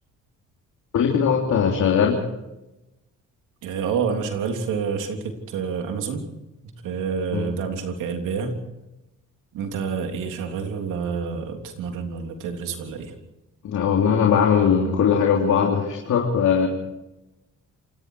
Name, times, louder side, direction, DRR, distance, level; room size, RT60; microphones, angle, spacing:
voice 1, 0.9-2.2 7.3-7.5 13.6-16.7, left 7 dB, 70° left, 0 dB, 3.4 m, -20 dB
voice 2, 3.6-6.2 6.8-8.5 9.5-13.1, right 6 dB, 90° right, 4 dB, 3.4 m, -28 dB
27.5 x 19.5 x 4.8 m, 0.96 s
cardioid pair, 90°, 30 cm